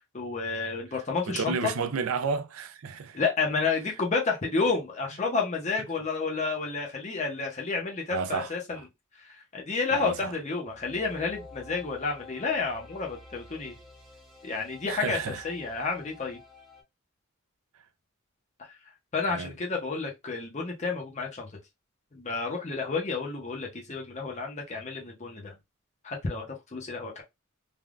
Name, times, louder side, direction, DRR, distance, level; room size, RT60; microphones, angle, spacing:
voice 1, 0.1-1.7 3.1-8.8 9.2-13.7 14.4-15.2 15.4-16.4 19.1-21.5 22.1-25.5 26.0-27.2, left 4 dB, 35° left, 0.7 m, -30 dB
voice 2, 1.3-3.2 8.1-8.8 9.9-10.3 14.9-15.4 19.3-19.5, right 5 dB, 75° right, 0.5 m, -32 dB
sound 1, 10.6-16.8, left 3 dB, ahead, 0.8 m, -49 dB
3.4 x 2.2 x 2.4 m
head